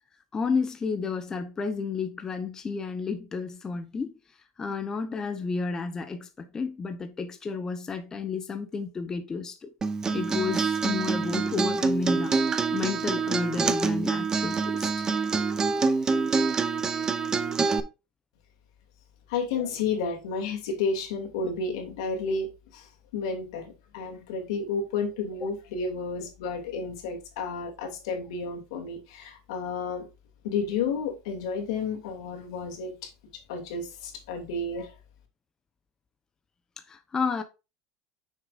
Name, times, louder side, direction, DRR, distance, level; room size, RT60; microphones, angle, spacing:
voice 1, 0.3-4.1 4.6-9.7 10.1-14.9 25.4-25.5 36.9-37.4, left 5 dB, 20° left, 0.8 m, -31 dB
Acoustic guitar, 9.8-17.8, right 4 dB, 20° right, 0.7 m, -26 dB
voice 2, 19.3-22.9 23.1-30.1 30.4-33.1 33.5-34.9, left 4 dB, 80° left, 2.6 m, -31 dB
8.6 x 6.5 x 2.5 m
supercardioid pair, 130°, 3 cm